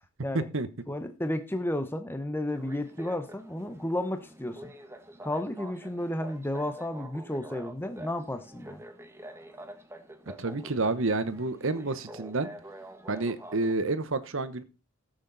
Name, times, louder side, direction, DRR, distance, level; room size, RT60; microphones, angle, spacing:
voice 1, 0.3-0.7 10.4-12.5 13.1-14.6, right 3 dB, 60° right, 1.0 m, -29 dB
voice 2, 0.9-4.7 5.2-8.8, left 1 dB, 10° left, 0.9 m, -32 dB
sound 1, 2.5-13.7, right 1 dB, 10° right, 1.2 m, -47 dB
13.0 x 8.0 x 4.0 m
head